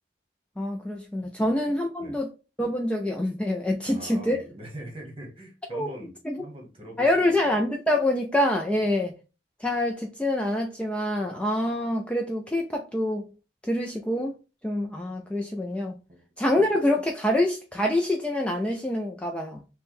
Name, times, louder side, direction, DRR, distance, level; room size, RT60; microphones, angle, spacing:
voice 1, 0.6-2.3 2.6-4.4 5.7-5.9 6.2-6.4 7.0-9.2 9.6-13.3 13.6-14.3 14.6-15.9 16.4-19.6, left 1 dB, 5° left, 0.4 m, -26 dB
voice 2, 3.9-6.1 6.4-7.6 16.1-16.2, equal, 30° right, 1.2 m, -42 dB
3.4 x 2.2 x 4.3 m
head